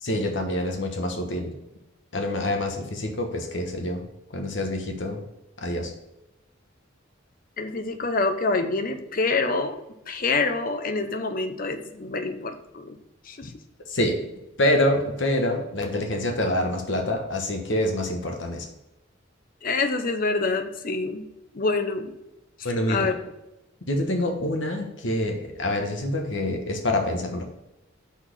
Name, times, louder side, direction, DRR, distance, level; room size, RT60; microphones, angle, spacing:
voice 1, 0.0-1.5 2.1-5.2 5.6-5.9 13.9-14.2 14.6-18.7 22.6-23.1 23.9-27.4, left 1 dB, 65° left, 3 dB, 1.2 m, -26 dB
voice 2, 7.6-9.8 10.1-13.0 13.3-13.5 19.6-21.3 21.5-22.1 22.9-23.1, left 3 dB, 45° left, 8 dB, 0.7 m, -26 dB
5.9 x 4.1 x 6.1 m, 0.94 s
head